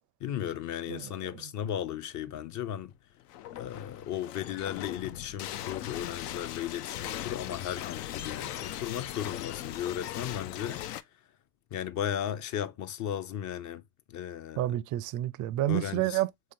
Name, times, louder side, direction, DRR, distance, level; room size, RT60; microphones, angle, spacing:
voice 1, 0.2-2.9 3.5-10.8 11.7-13.8 14.1-14.8 15.7-16.2, left 10 dB, 40° left, 0.6 m, -35 dB
voice 2, 0.9-1.5 14.6-16.5, right 15 dB, 40° right, 0.4 m, -30 dB
sound 1, 3.2-11.0, left 12 dB, 75° left, 0.6 m, -39 dB
3.8 x 3.2 x 2.7 m
hypercardioid pair, 70°, 49 cm